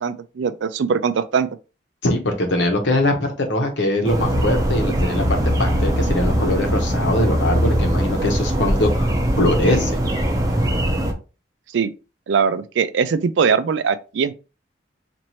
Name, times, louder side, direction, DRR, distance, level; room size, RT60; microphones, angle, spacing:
voice 1, 0.0-1.5 11.7-11.9 12.3-14.3, right 6 dB, 85° right, 0.4 m, -21 dB
voice 2, 2.0-10.0, left 1 dB, 85° left, 1.0 m, -22 dB
sound 1, 4.0-11.1, equal, 20° right, 0.7 m, -21 dB
4.2 x 2.6 x 3.0 m
head